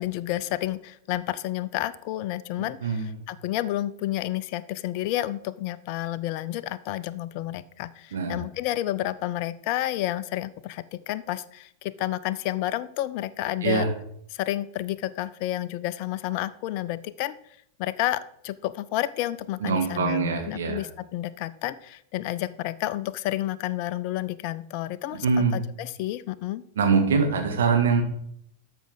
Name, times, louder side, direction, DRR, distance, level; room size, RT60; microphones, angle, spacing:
voice 1, 0.0-13.9 14.3-17.4 17.8-25.3 25.5-26.6, left 14 dB, 45° left, 15 dB, 0.4 m, -30 dB
voice 2, 8.1-8.4 13.6-13.9 19.6-20.8 25.2-25.5 26.8-28.0, right 5 dB, 60° right, 3 dB, 1.6 m, -23 dB
13.0 x 5.0 x 3.8 m, 0.70 s
figure-of-eight pair, 90°, 0 cm